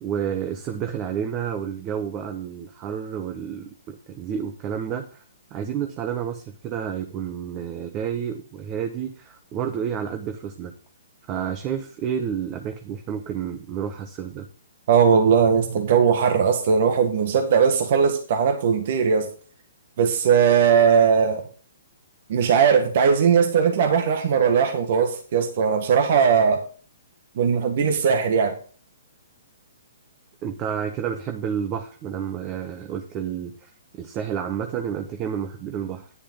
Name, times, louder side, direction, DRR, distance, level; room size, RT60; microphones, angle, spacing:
voice 1, 0.0-5.2 5.5-10.7 11.3-14.5 30.4-36.1, right 8 dB, 30° right, 6 dB, 1.2 m, -30 dB
voice 2, 14.9-19.3 20.0-21.4 22.3-26.6 27.4-28.6, right 6 dB, 55° right, 6 dB, 1.7 m, -19 dB
10.0 x 10.0 x 3.8 m, 0.39 s
hypercardioid pair, 135°, 0 cm